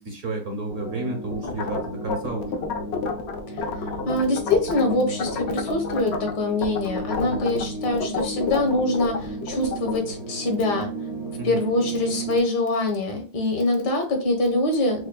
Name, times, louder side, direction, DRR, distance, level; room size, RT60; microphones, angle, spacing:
voice 1, 0.0-2.6 7.2-7.4 11.4-11.6, right 2 dB, 55° right, 3 dB, 1.0 m, -32 dB
In Silence, 0.7-12.4, right 1 dB, 80° right, 2.1 m, -34 dB
sound 1, 1.3-4.9 5.2-6.3 6.6-10.0, left 5 dB, 85° left, 0.5 m, -29 dB
voice 2, 3.6-10.9 11.4-15.1, left 2 dB, 70° left, 3 dB, 1.7 m, -24 dB
6.3 x 2.2 x 2.2 m, 0.37 s
omnidirectional pair, 1.9 m